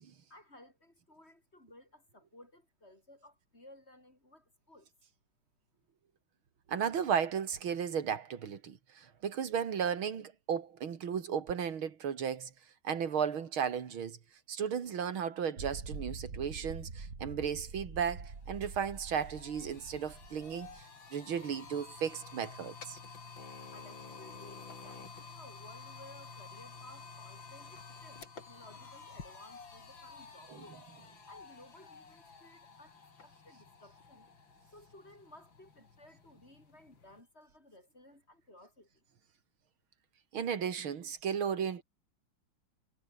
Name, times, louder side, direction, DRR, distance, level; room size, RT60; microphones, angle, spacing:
voice 1, 0.3-4.9 23.7-30.8 31.2-34.3 34.7-39.0, left 1 dB, 30° left, 7.4 m, -57 dB
voice 2, 6.7-12.5 12.8-14.2 14.5-20.8 21.1-23.0 40.3-41.8, right 7 dB, 90° right, 2.8 m, -35 dB
sound 1, 15.6-20.8, right 4 dB, 45° right, 3.4 m, -45 dB
sound 2, 17.8-17.9 18.2-37.2, left 5 dB, 70° left, 4.0 m, -51 dB
omnidirectional pair, 2.2 m